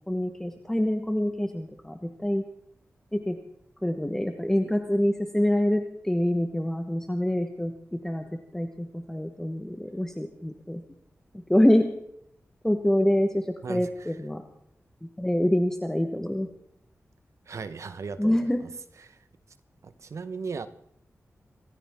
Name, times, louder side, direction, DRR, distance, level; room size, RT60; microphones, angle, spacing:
voice 1, 0.1-2.4 3.1-3.4 3.8-8.2 8.5-10.8 11.3-11.9 12.6-14.4 15.0-16.5 18.2-18.6, left 1 dB, 10° left, 5 dB, 1.2 m, -26 dB
voice 2, 17.5-18.7 19.1-19.2 19.8-20.7, right 5 dB, 70° right, 12 dB, 1.0 m, -37 dB
26.5 x 14.0 x 3.6 m, 0.73 s
wide cardioid pair, 105°, 5 cm